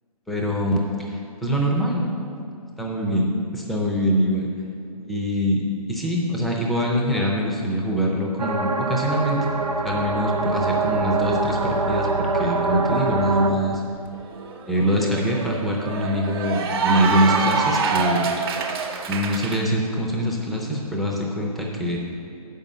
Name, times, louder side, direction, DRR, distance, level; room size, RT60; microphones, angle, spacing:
voice 1, 0.3-2.2 2.8-4.5 5.0-5.6 5.9-9.4 9.8-13.8 14.7-18.3 19.1-22.0, equal, ahead, -2 dB, 0.6 m, -24 dB
sound 1, 8.4-13.5, right 3 dB, 65° right, 0.9 m, -24 dB
Cheering / Applause, 13.7-13.8 14.2-19.6, right 4 dB, 40° right, 0.8 m, -26 dB
7.0 x 5.5 x 6.7 m, 2.5 s
figure-of-eight pair, 135°, 20 cm